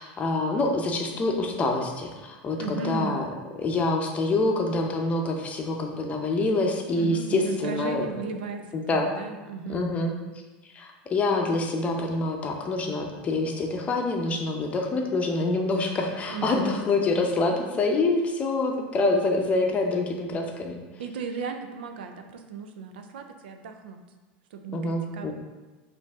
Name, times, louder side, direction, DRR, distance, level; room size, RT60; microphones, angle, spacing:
voice 1, 0.0-3.3 3.6-8.3 8.7-9.1 9.7-10.1 10.7-20.8 24.7-25.3, left 2 dB, 25° left, 2 dB, 0.6 m, -26 dB
voice 2, 2.6-3.2 6.9-9.9 16.3-16.8 21.0-24.0 24.5-25.3, right 4 dB, 85° right, 6 dB, 0.5 m, -35 dB
5.3 x 2.6 x 3.5 m, 1.2 s
supercardioid pair, 125°, 5 cm